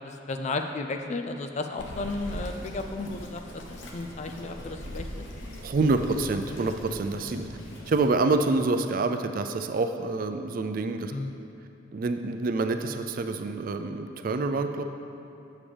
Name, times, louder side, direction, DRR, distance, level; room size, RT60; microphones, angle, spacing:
voice 1, 0.3-3.4 3.7-5.2 11.1-11.3, left 3 dB, 35° left, 6 dB, 0.4 m, -33 dB
Bird vocalization bird call bird song, 1.8-8.1, equal, 85° left, 0.9 m, -40 dB
voice 2, 5.6-7.5 7.9-11.1 11.9-14.8, right 3 dB, 45° right, 7 dB, 0.4 m, -27 dB
7.4 x 7.0 x 3.3 m, 3.0 s
head